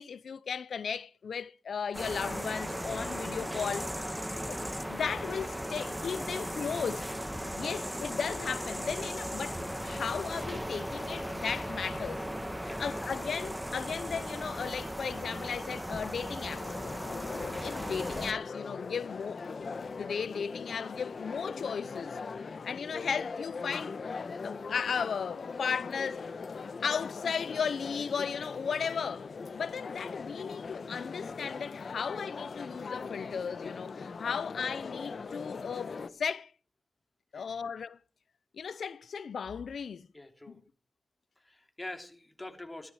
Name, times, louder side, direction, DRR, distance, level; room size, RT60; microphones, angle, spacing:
voice 1, 0.0-3.9 4.5-4.6 4.9-7.1 7.6-12.3 12.6-16.7 17.6-19.4 20.0-22.2 22.5-23.9 24.4-26.3 26.8-36.5 37.3-38.0 38.5-40.1 40.5-40.6, left 6 dB, 85° left, 0.6 m, -35 dB
sound 1, 1.9-18.3, equal, 5° right, 1.7 m, -37 dB
voice 2, 7.6-7.9 12.6-13.0 22.4-22.7 29.6-29.8 37.3-37.6 40.1-40.6 41.4-42.9, left 2 dB, 20° left, 3.1 m, -46 dB
sound 2, 16.4-36.1, left 4 dB, 65° left, 1.1 m, -40 dB
14.5 x 13.0 x 4.9 m
cardioid pair, 75°, 0 cm